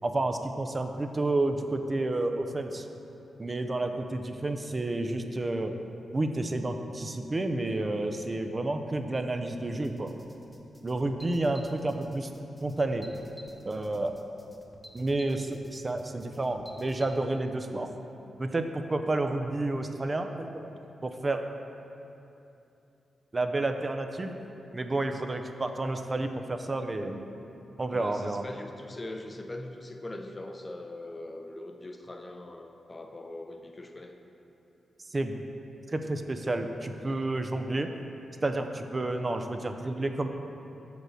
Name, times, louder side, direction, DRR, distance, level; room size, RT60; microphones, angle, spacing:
voice 1, 0.0-2.9 3.4-5.8 6.1-10.2 10.8-12.3 12.6-13.1 13.6-14.2 14.9-17.9 18.4-20.7 21.0-21.4 23.3-24.3 24.7-27.2 27.8-28.4 35.1-35.4 35.9-37.9 38.4-40.3, right 2 dB, 30° right, 6 dB, 0.5 m, -30 dB
sound 1, 9.8-17.1, equal, 5° left, 1.0 m, -53 dB
voice 2, 27.9-34.1, left 2 dB, 30° left, 4 dB, 0.6 m, -41 dB
6.1 x 5.2 x 6.5 m, 2.9 s
cardioid pair, 70°, 0 cm